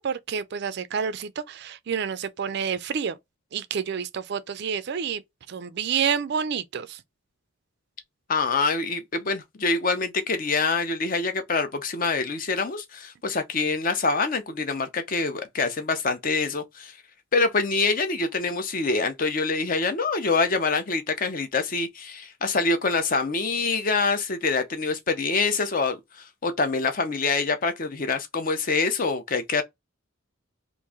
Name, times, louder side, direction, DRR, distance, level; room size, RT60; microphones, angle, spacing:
voice 1, 0.0-3.2 3.5-5.2 5.5-7.0, right 7 dB, 50° right, 0.4 m, -29 dB
voice 2, 8.3-17.0 17.3-29.6, left 4 dB, 40° left, 0.6 m, -25 dB
3.0 x 2.6 x 3.5 m
head